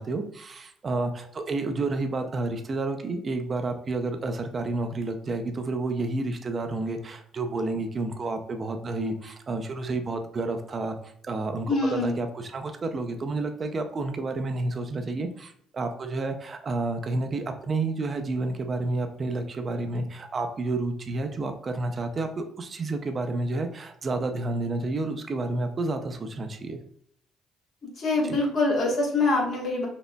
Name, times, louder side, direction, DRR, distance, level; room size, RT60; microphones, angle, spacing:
voice 1, 0.0-26.8 28.2-28.4, right 2 dB, 40° right, 6 dB, 0.6 m, -30 dB
voice 2, 11.7-12.1 28.0-29.9, left 2 dB, 60° left, -1 dB, 1.3 m, -24 dB
5.6 x 2.1 x 2.2 m, 0.66 s
hypercardioid pair, 55°, 0 cm